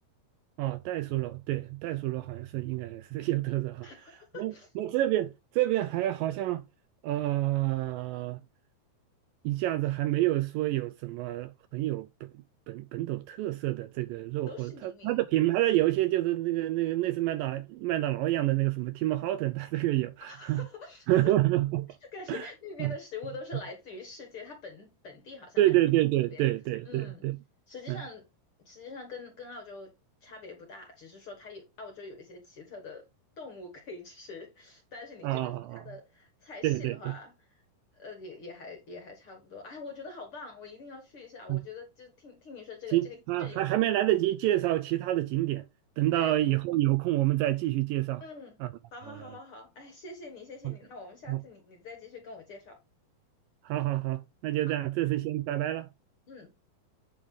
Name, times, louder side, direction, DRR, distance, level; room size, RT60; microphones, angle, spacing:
voice 1, 0.6-3.9 4.4-6.6 7.0-8.4 9.4-12.3 12.7-20.7 21.1-22.0 22.3-22.5 22.8-22.9 25.6-27.4 27.9-28.0 35.2-35.8 36.6-37.1 41.5-41.6 42.9-45.7 46.0-48.2 48.6-48.7 49.1-49.3 50.6-50.8 51.3-51.4 53.6-55.9, right 15 dB, 80° right, 2.0 m, -28 dB
voice 2, 3.8-4.7 14.5-15.2 20.2-21.3 22.1-25.6 26.3-26.5 26.9-27.2 27.7-28.3 28.7-29.9 30.2-33.0 33.4-37.6 38.0-43.8 46.1-46.3 48.2-48.6 48.9-52.8 56.3-56.5, left 4 dB, 50° left, 1.9 m, -45 dB
8.5 x 5.3 x 3.7 m
omnidirectional pair, 4.4 m